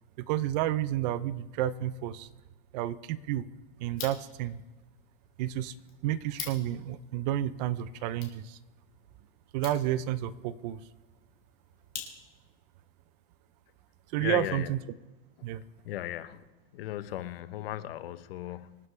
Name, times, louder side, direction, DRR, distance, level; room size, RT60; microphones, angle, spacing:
voice 1, 0.2-2.3 2.7-3.5 3.8-4.6 5.4-5.7 6.0-8.6 9.5-10.8 14.1-14.8 15.4-15.6, right 12 dB, 45° right, 16 dB, 0.7 m, -31 dB
sound 1, 3.8-12.6, left 8 dB, 30° left, 2.9 m, -48 dB
voice 2, 14.2-14.7 15.4-15.5 15.8-16.4 16.7-18.8, left 13 dB, 75° left, 13 dB, 1.0 m, -36 dB
26.0 x 9.5 x 3.4 m, 1.2 s
supercardioid pair, 160°, 29 cm